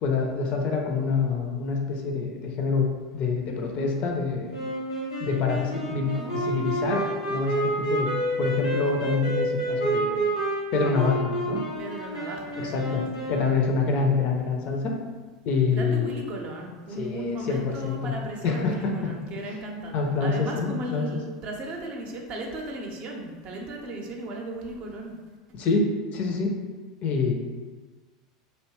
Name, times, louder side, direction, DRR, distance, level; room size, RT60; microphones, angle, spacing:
voice 1, 0.0-4.6 5.2-10.3 10.7-11.6 12.6-15.0 15.5-16.2 17.0-18.1 18.4-19.1 19.9-21.1 25.5-26.5 27.0-27.3, left 4 dB, 45° left, 2 dB, 0.5 m, -26 dB
Wind instrument woodwind instrument, 4.5-14.0, right 1 dB, 90° left, 0.9 m, -29 dB
voice 2, 6.1-7.4 11.8-13.2 15.7-25.1, right 2 dB, 45° right, 1 dB, 0.5 m, -36 dB
2.7 x 2.2 x 2.9 m, 1.3 s
hypercardioid pair, 85°, 3 cm